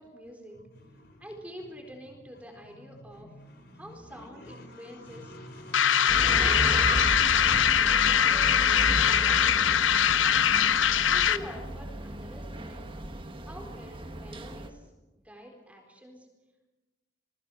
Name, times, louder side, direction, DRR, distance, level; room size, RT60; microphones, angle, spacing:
voice 1, 0.0-0.6 1.2-3.3 3.7-5.3 6.2-6.7 7.8-10.0 11.1-12.8 13.4-14.9 15.2-16.3, equal, 5° right, 1 dB, 4.1 m, -46 dB
voice 2, 0.5-1.3 2.6-7.2, left 1 dB, 55° left, 4 dB, 5.0 m, -47 dB
sound 1, 5.7-11.5, left 9 dB, 85° left, 0.8 m, -22 dB
sound 2, 6.1-14.7, right 1 dB, 25° right, 1.5 m, -35 dB
28.5 x 20.0 x 6.3 m, 1.1 s
head